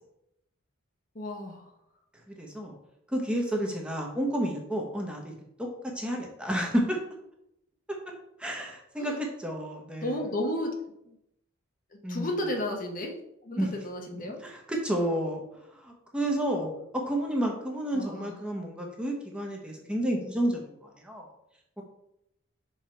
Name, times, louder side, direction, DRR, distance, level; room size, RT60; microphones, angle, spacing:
voice 1, 1.1-1.7 9.0-9.2 10.0-10.7 11.1-11.2 11.9-13.1 13.4-14.4 17.9-18.3, left 1 dB, 40° left, 1 dB, 0.9 m, -33 dB
voice 2, 2.3-2.7 3.1-5.7 5.9-7.0 8.4-10.2 12.0-12.4 13.6-13.7 14.4-15.4 15.7-21.2 21.8-21.9, right 1 dB, 5° right, 0 dB, 1.0 m, -31 dB
5.6 x 4.7 x 4.5 m, 0.80 s
head